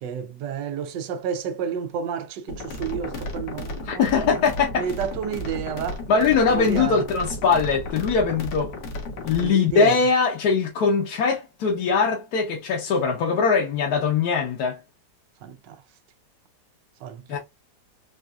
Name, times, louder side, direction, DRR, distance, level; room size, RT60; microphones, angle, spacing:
voice 1, 0.0-4.3 4.8-6.0 6.5-7.0 9.4-10.0 15.4-15.8 17.0-17.4, right 7 dB, 85° right, 1.3 m, -31 dB
sound 1, 2.5-9.5, left 1 dB, 90° left, 1.6 m, -34 dB
voice 2, 3.9-4.9 6.1-8.7 9.2-14.8 17.3-17.4, left 5 dB, 70° left, 1.2 m, -21 dB
4.2 x 2.4 x 2.3 m
omnidirectional pair, 1.9 m